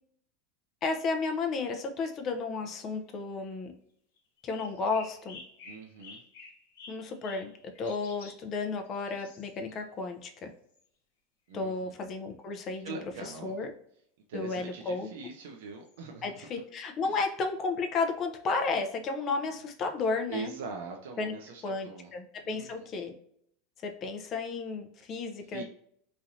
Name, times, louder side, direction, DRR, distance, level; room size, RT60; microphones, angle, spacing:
voice 1, 0.8-3.7 4.4-5.4 6.9-10.5 11.5-13.7 14.3-15.1 16.2-20.5 21.2-21.3 21.6-23.1 23.8-25.6, left 4 dB, 35° left, 5 dB, 0.5 m, -33 dB
sound 1, 4.2-8.4 8.8-9.8 10.7-10.8 11.5-11.6 11.9-12.1 14.8-14.9 15.8-16.0, left 4 dB, 80° left, 1.0 m, -51 dB
voice 2, 5.6-6.2 11.5-11.9 12.8-13.6 14.3-16.5 17.0-17.2 20.3-22.1 22.4-22.9 25.5-25.6, right 4 dB, 80° right, 2 dB, 0.5 m, -42 dB
3.1 x 2.5 x 2.6 m, 0.66 s
supercardioid pair, 140°, 0 cm